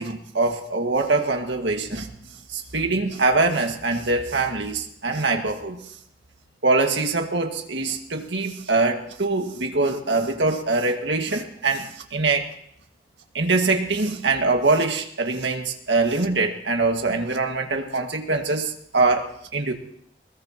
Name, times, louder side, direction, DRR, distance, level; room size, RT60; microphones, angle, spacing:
voice 1, 0.0-2.1 2.5-5.8 6.6-12.5 13.3-19.7, right 3 dB, 80° right, 3 dB, 1.9 m, -23 dB
21.0 x 21.0 x 3.0 m, 0.70 s
head